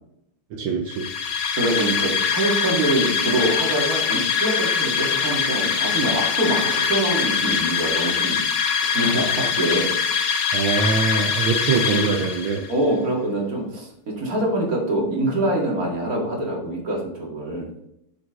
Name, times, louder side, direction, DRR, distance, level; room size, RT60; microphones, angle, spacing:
voice 1, 0.5-1.1 10.5-12.6, right 4 dB, 75° right, 2 dB, 1.6 m, -23 dB
sound 1, 0.9-12.7, left 6 dB, 65° left, 1.6 m, -23 dB
voice 2, 1.6-8.4 8.9-9.9 12.7-17.7, right 1 dB, 45° right, -2 dB, 2.6 m, -24 dB
8.1 x 7.3 x 3.7 m, 0.78 s
omnidirectional pair, 2.3 m